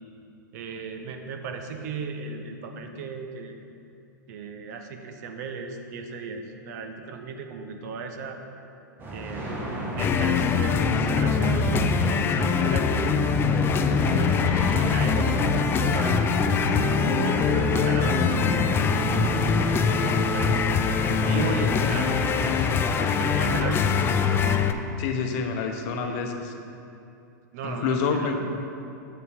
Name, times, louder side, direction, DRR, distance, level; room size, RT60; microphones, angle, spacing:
voice 1, 0.5-3.6 4.3-8.4 9.1-9.5 10.0-13.2 13.9-18.6 19.5-20.7 21.2-22.7 23.0-24.0 26.0-26.2 27.5-28.4, right 4 dB, 60° right, 5 dB, 0.8 m, -36 dB
sound 1, 9.0-24.6, right 1 dB, 20° right, 1.4 m, -31 dB
sound 2, 10.0-24.7, left 6 dB, 20° left, 0.3 m, -23 dB
voice 2, 25.0-26.4 27.6-28.4, left 5 dB, 50° left, 5 dB, 0.8 m, -27 dB
7.7 x 6.7 x 3.5 m, 2.7 s
hypercardioid pair, 115°, 10 cm